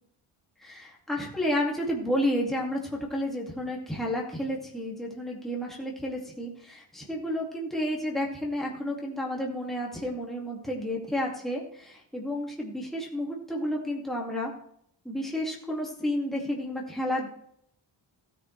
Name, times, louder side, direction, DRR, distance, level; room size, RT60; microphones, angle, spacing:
voice 1, 0.6-14.5 15.0-17.3, equal, ahead, -3 dB, 2.3 m, -31 dB
15.5 x 10.0 x 3.3 m, 0.68 s
wide cardioid pair, 135°, 50 cm